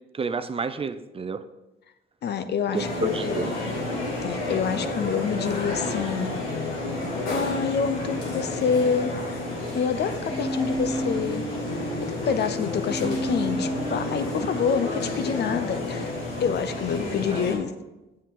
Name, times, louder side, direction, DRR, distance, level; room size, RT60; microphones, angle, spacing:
voice 1, 0.1-1.4 2.7-3.5 17.3-17.4, right 5 dB, 30° right, 11 dB, 0.5 m, -30 dB
voice 2, 2.2-3.5 4.2-6.4 7.3-9.4 9.7-11.4 12.0-16.1 16.4-17.7, left 6 dB, 55° left, 11 dB, 0.6 m, -27 dB
sound 1, 2.7-17.6, left 2 dB, 85° left, 2.1 m, -31 dB
sound 2, 10.3-15.5, equal, 20° left, 1.4 m, -32 dB
7.3 x 7.2 x 3.8 m, 1.0 s
cardioid pair, 90°, 20 cm